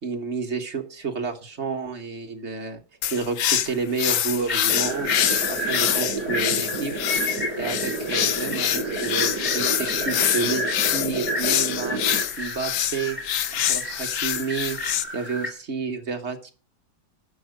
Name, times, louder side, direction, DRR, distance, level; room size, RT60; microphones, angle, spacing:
voice 1, 0.0-2.8 3.1-5.1 5.5-6.9 7.6-12.0 12.4-13.2 13.5-14.8 15.1-16.5, right 5 dB, 45° right, 5 dB, 1.6 m, -30 dB
sound 1, 3.0-15.0, left 11 dB, 90° left, 1.4 m, -25 dB
sound 2, 4.5-15.5, equal, 5° left, 2.8 m, -33 dB
sound 3, 4.7-12.2, right 3 dB, 60° right, 3.4 m, -31 dB
12.0 x 6.3 x 6.5 m, 0.37 s
omnidirectional pair, 1.8 m